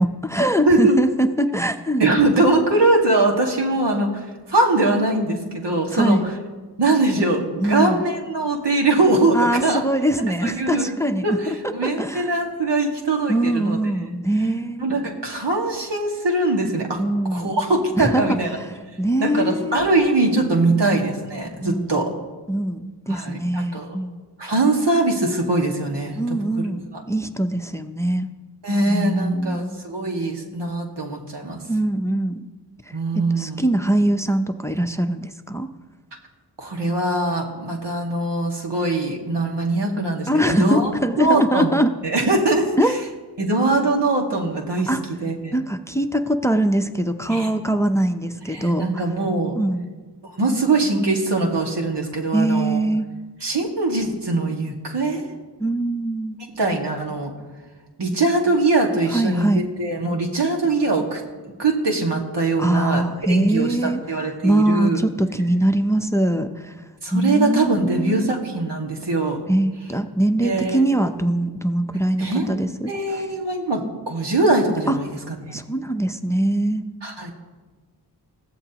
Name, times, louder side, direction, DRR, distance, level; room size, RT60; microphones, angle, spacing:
voice 1, 0.0-2.1 5.9-6.2 7.6-8.0 9.3-11.5 11.8-12.3 13.3-14.9 17.0-17.6 18.0-18.4 19.0-19.8 20.7-20.9 21.6-22.0 22.5-24.2 26.2-28.3 28.9-29.7 31.7-32.4 33.1-35.7 40.3-41.9 42.8-42.9 44.9-45.0 45.5-49.0 49.6-49.9 52.3-53.1 55.6-56.4 59.1-59.7 62.6-64.0 64.4-66.8 67.1-68.3 69.5-73.2 74.9-75.0 75.5-76.8, right 1 dB, 5° left, 8 dB, 0.7 m, -22 dB
voice 2, 0.7-1.0 2.0-6.2 6.8-9.8 10.4-10.9 11.2-13.8 14.8-17.0 17.3-18.6 19.2-22.1 23.1-24.0 24.4-26.5 26.9-27.0 28.6-31.6 32.9-33.6 36.6-40.9 41.2-41.7 42.0-43.0 43.4-44.9 45.2-45.5 47.3-47.5 48.5-49.6 50.2-52.8 53.4-55.2 56.5-57.3 58.0-61.2 61.6-63.0 63.3-65.0 67.0-69.4 70.4-70.8 72.2-72.6 72.9-75.6 77.0-77.3, right 2 dB, 75° right, 0 dB, 2.1 m, -22 dB
21.0 x 15.0 x 3.0 m, 1.3 s
wide cardioid pair, 75°, 41 cm